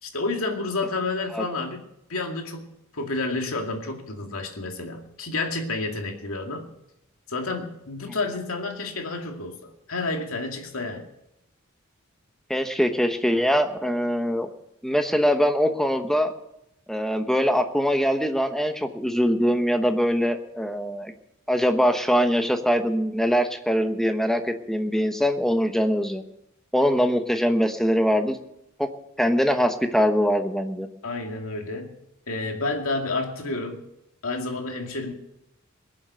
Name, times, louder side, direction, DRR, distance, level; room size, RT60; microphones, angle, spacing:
voice 1, 0.0-1.8 2.1-2.7 2.9-6.7 7.3-11.1 31.0-31.9 32.3-33.8 34.2-35.1, left 3 dB, 75° left, 3 dB, 2.3 m, -30 dB
voice 2, 12.5-14.5 14.8-16.3 16.9-21.1 21.5-26.2 26.7-28.4 28.8-28.9 29.2-30.9, equal, ahead, 6 dB, 1.0 m, -22 dB
21.5 x 7.6 x 6.9 m, 0.83 s
head